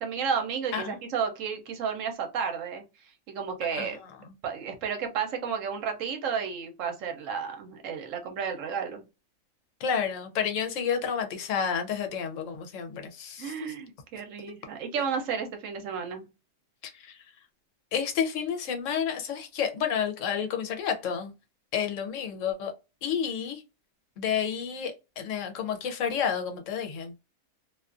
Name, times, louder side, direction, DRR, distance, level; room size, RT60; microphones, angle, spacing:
voice 1, 0.0-2.8 3.3-4.0 4.4-9.0 13.4-16.3, right 6 dB, 75° right, 1.0 m, -32 dB
voice 2, 9.8-13.7 16.8-17.2 17.9-21.3 21.7-22.7 23.0-23.6 24.2-27.1, left 7 dB, 75° left, 0.9 m, -30 dB
2.5 x 2.4 x 2.4 m
omnidirectional pair, 1.4 m